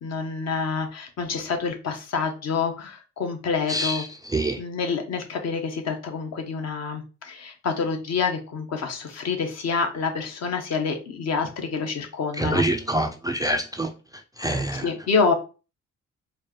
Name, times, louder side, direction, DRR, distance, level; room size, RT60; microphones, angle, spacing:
voice 1, 0.0-4.0 4.6-12.6 14.8-15.3, left 5 dB, 60° left, 1.0 m, -27 dB
voice 2, 3.7-4.6 12.4-13.9 14.4-14.9, right 1 dB, 15° right, 0.3 m, -26 dB
4.4 x 2.3 x 3.0 m
cardioid pair, 90°, 30 cm